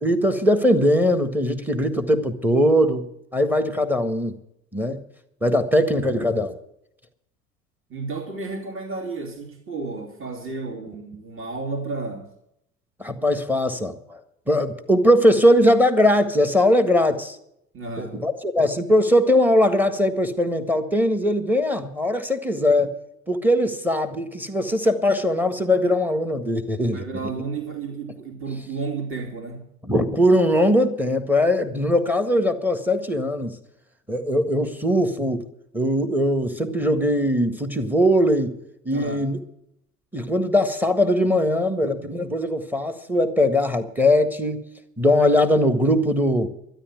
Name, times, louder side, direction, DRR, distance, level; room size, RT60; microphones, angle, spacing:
voice 1, 0.0-4.4 4.7-5.0 5.4-6.5 13.0-14.2 14.5-17.4 18.0-22.9 23.3-27.0 29.8-33.6 34.1-35.5 35.7-38.6 38.8-39.4 40.1-44.6 45.0-46.5, left 1 dB, 5° right, 9 dB, 1.6 m, -20 dB
voice 2, 7.9-12.3 17.7-18.2 26.9-29.7 38.9-39.2, right 4 dB, 30° right, 2 dB, 3.0 m, -32 dB
12.5 x 10.5 x 9.0 m, 0.77 s
figure-of-eight pair, 65°, 41 cm